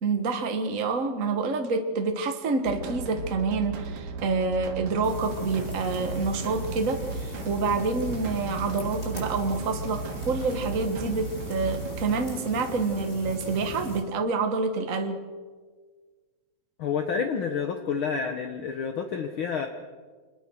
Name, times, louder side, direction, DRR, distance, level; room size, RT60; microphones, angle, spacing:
voice 1, 0.0-15.2, right 4 dB, 70° right, 6 dB, 0.7 m, -27 dB
sound 1, 2.7-12.1, right 3 dB, 90° right, 3.5 m, -36 dB
sound 2, 5.0-14.0, equal, 15° left, 6.1 m, -39 dB
voice 2, 16.8-19.7, left 6 dB, 65° left, 5 dB, 1.3 m, -29 dB
26.0 x 21.0 x 6.4 m, 1.5 s
omnidirectional pair, 3.9 m